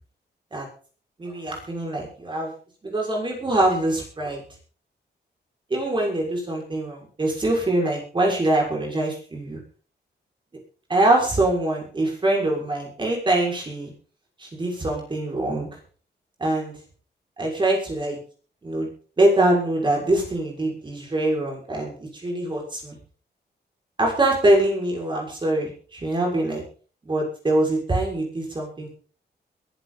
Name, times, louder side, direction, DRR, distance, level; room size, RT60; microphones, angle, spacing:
voice 1, 1.2-2.5 2.8-4.4 5.7-9.6 10.9-13.9 14.4-15.7 16.4-16.7 17.4-18.2 18.6-18.9 19.2-23.0 24.0-26.6 27.0-28.9, right 1 dB, 25° right, -1 dB, 6.2 m, -23 dB
21.5 x 11.5 x 4.2 m, 0.42 s
wide cardioid pair, 165°, 18 cm